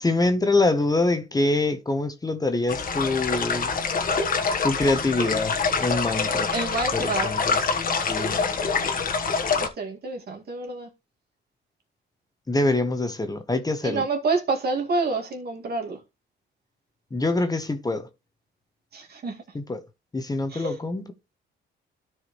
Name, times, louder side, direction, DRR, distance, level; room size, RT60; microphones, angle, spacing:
voice 1, 0.0-3.7 4.6-6.5 6.9-7.6 8.1-8.4 12.5-14.0 17.1-18.1 19.5-19.8 20.1-21.1, left 2 dB, 20° left, 1.1 m, -25 dB
sound 1, 2.7-9.7, left 5 dB, 45° left, 1.3 m, -25 dB
voice 2, 6.5-7.3 8.2-8.7 9.6-10.9 13.8-16.0 18.9-19.4 20.5-20.8, right 3 dB, 55° right, 2.3 m, -28 dB
13.0 x 4.9 x 3.2 m
cardioid pair, 90°, 20 cm